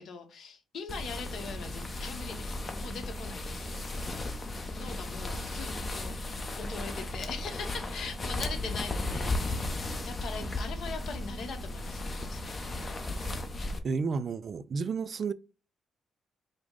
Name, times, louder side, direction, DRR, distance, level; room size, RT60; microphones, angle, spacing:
voice 1, 0.0-3.7 4.0-4.3 4.7-6.2 6.6-12.6, left 4 dB, 65° left, 0.9 m, -41 dB
sound 1, 0.9-13.8, left 2 dB, 30° left, 0.6 m, -35 dB
voice 2, 13.8-15.3, right 5 dB, 50° right, 0.3 m, -31 dB
5.0 x 2.1 x 3.6 m
cardioid pair, 90°, 0 cm